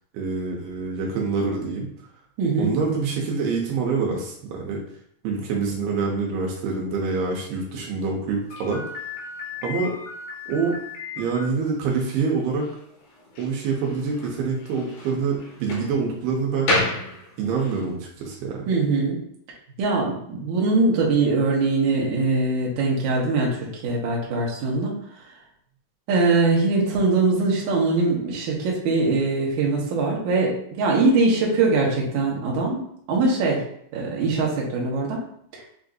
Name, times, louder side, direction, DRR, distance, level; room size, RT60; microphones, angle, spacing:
voice 1, 0.1-1.9 2.6-4.8 5.2-9.0 9.6-9.9 10.5-10.8 11.2-12.7 13.4-16.7 17.4-18.7, right 4 dB, 85° right, -1 dB, 2.6 m, -26 dB
voice 2, 2.4-2.7 18.7-19.2 19.8-24.9 26.1-32.8 33.1-33.6 33.9-35.2, right 3 dB, 70° right, -3 dB, 2.0 m, -22 dB
Slam, 8.5-17.8, left 2 dB, 65° left, 2.2 m, -32 dB
6.8 x 2.6 x 2.5 m, 0.67 s
omnidirectional pair, 4.3 m